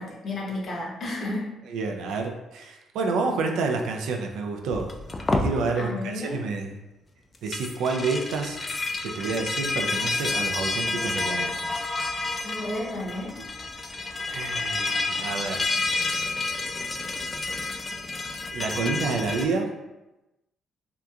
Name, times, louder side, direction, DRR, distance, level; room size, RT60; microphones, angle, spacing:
voice 1, 0.0-1.5 5.8-6.4 12.4-13.3, left 2 dB, 50° left, -3 dB, 0.7 m, -32 dB
voice 2, 1.7-4.9 5.3-6.8 7.4-8.6 9.0-11.8 14.3-15.7 18.5-19.7, right 4 dB, 85° right, 3 dB, 0.3 m, -29 dB
sound 1, 4.7-5.5 7.3-19.5, left 3 dB, 30° left, 0.3 m, -29 dB
2.8 x 2.4 x 2.3 m, 0.99 s
cardioid pair, 90°, 0 cm